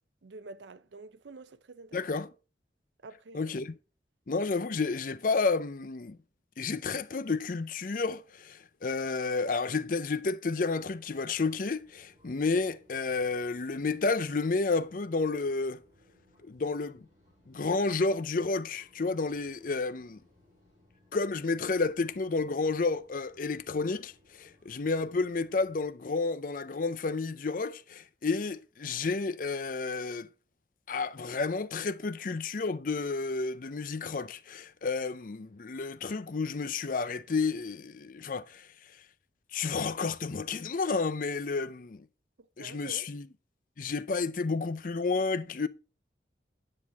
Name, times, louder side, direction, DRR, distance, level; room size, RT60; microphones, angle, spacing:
voice 1, 0.2-2.0 3.0-3.5 42.6-43.1, right 3 dB, 90° right, 0.6 m, -47 dB
voice 2, 1.9-2.3 3.3-3.7 4.3-6.2 6.6-15.8 16.4-17.1 17.5-20.2 21.1-30.3 30.9-38.7 39.5-42.1 42.6-43.3 43.8-45.7, left 4 dB, 50° left, 0.5 m, -31 dB
sound 1, 10.9-25.9, left 1 dB, 20° right, 5.8 m, -64 dB
9.8 x 7.7 x 3.5 m
head